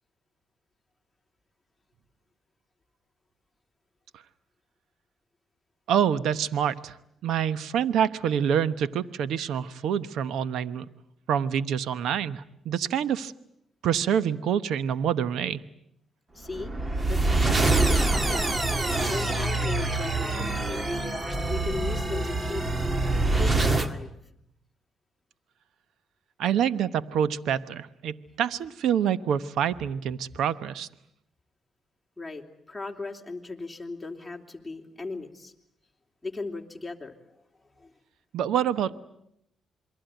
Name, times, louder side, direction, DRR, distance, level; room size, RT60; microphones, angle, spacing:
voice 1, 5.9-7.0 7.2-10.9 11.3-13.3 13.8-15.6 26.4-30.9 38.3-38.9, right 9 dB, 80° right, 15 dB, 1.0 m, -26 dB
voice 2, 16.3-16.7 17.0-18.6 19.0-21.0 21.5-24.2 32.2-35.5 36.2-37.1 37.7-37.9, left 3 dB, 10° left, 1 dB, 3.4 m, -37 dB
sound 1, 16.5-23.9, right 2 dB, 25° right, 2.0 m, -25 dB
28.0 x 22.5 x 9.1 m, 0.77 s
cardioid pair, 90°, 0 cm